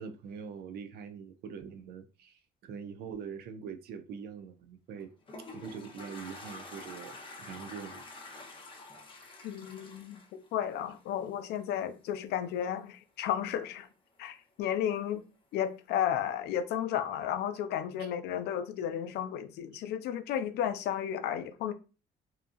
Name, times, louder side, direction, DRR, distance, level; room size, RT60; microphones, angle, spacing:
voice 1, 0.0-5.1 5.4-8.1 18.0-18.1 19.7-19.8, right 6 dB, 65° right, 0.5 m, -43 dB
Toilet flush, 4.9-11.3, left 2 dB, 30° left, 0.7 m, -48 dB
voice 2, 9.4-13.9 14.2-15.2 15.5-21.7, left 10 dB, 75° left, 0.4 m, -33 dB
2.8 x 2.3 x 2.5 m
cardioid pair, 110°, 17 cm